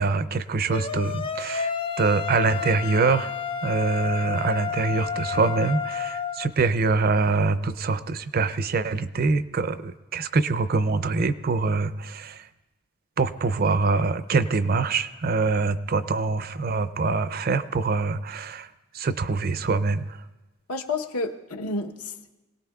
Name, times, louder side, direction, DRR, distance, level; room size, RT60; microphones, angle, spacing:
voice 1, 0.0-3.3 3.6-12.5 13.2-18.7 18.9-20.2, right 4 dB, 40° right, 13 dB, 0.4 m, -24 dB
sound 1, 0.7-6.5, left 6 dB, 25° left, 0.4 m, -31 dB
voice 2, 20.7-22.3, left 3 dB, 80° left, 4 dB, 1.0 m, -30 dB
25.5 x 18.0 x 2.3 m, 1.1 s
head